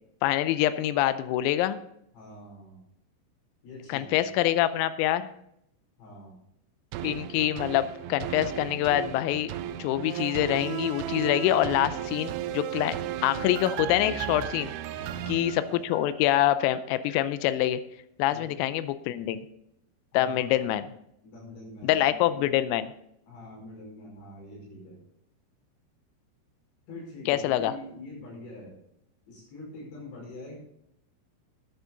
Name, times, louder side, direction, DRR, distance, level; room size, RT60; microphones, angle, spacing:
voice 1, 0.2-1.8 3.9-5.3 7.0-9.5 9.8-13.0 13.2-14.7 15.3-17.8 18.2-19.4 20.1-20.9 21.8-22.9 27.3-27.7, left 13 dB, 90° left, 13 dB, 3.4 m, -25 dB
voice 2, 2.1-2.8 3.6-4.3 6.0-6.4 14.9-15.4 18.3-18.6 20.2-20.8 21.2-22.5 23.3-25.0 26.9-28.8 29.3-30.6, left 2 dB, 65° left, -3 dB, 7.3 m, -45 dB
sound 1, 6.9-16.3 16.8-16.9, right 12 dB, 80° right, 2.8 m, -35 dB
13.0 x 10.0 x 3.9 m, 0.77 s
omnidirectional pair, 5.9 m